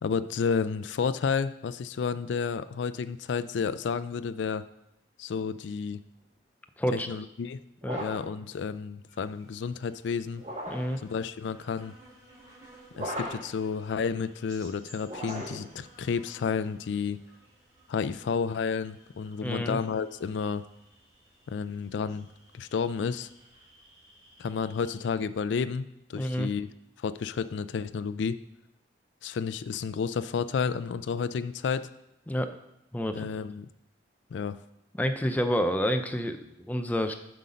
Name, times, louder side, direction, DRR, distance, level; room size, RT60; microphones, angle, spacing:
voice 1, 0.0-4.6 5.2-6.0 6.9-7.6 8.0-10.4 11.0-11.9 13.0-17.2 17.9-20.6 21.5-22.3 22.5-23.3 24.4-25.8 26.1-26.7 27.0-28.4 29.2-31.9 33.1-33.7 34.3-34.6, left 6 dB, 75° left, 13 dB, 0.4 m, -31 dB
voice 2, 6.8-7.2 7.8-8.0 10.7-11.0 19.4-19.8 26.1-26.5 32.3-32.5 32.9-33.3 35.0-37.1, equal, 10° left, 7 dB, 0.4 m, -29 dB
sound 1, 7.8-8.4 10.4-11.0 12.9-13.6 15.0-15.8, equal, 35° right, 1.3 m, -37 dB
sound 2, 9.1-25.0, right 1 dB, 20° right, 2.9 m, -57 dB
7.7 x 5.6 x 5.1 m, 0.86 s
head